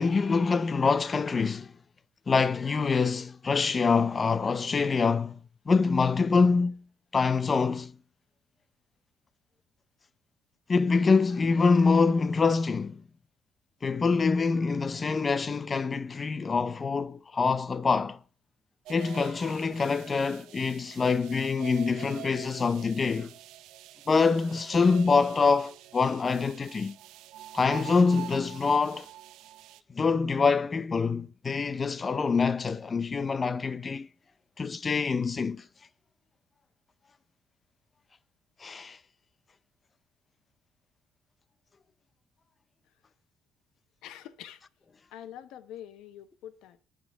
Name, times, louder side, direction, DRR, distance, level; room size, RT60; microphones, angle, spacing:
voice 1, 0.0-1.7 2.3-5.4 5.7-6.8 7.1-8.0 10.7-13.0 13.8-18.2 18.9-23.3 24.1-27.0 27.5-29.1 29.9-34.1 34.6-35.7 38.6-39.0, left 4 dB, 30° left, 0.6 m, -25 dB
sound 1, 18.9-29.8, right 14 dB, 85° right, 0.8 m, -46 dB
voice 2, 44.0-44.7 45.1-46.8, left 11 dB, 80° left, 1.0 m, -45 dB
9.7 x 6.0 x 8.7 m
cardioid pair, 120°, 0 cm